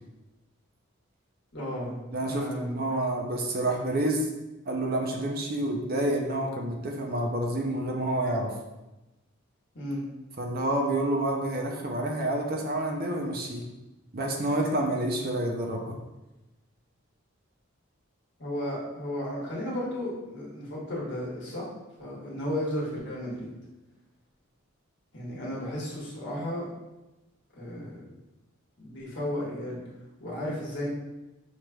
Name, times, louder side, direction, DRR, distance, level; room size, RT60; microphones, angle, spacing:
voice 1, 1.5-2.0 2.2-3.0 9.7-10.0 18.4-21.6 22.0-23.5 25.1-26.7 27.5-28.0 28.8-29.8 30.2-30.9, left 1 dB, 55° left, -6 dB, 1.4 m, -34 dB
voice 2, 2.1-4.3 4.7-8.5 10.4-13.6 14.1-16.0, right 1 dB, 45° right, 1 dB, 0.5 m, -28 dB
5.6 x 3.1 x 2.3 m, 1.0 s
head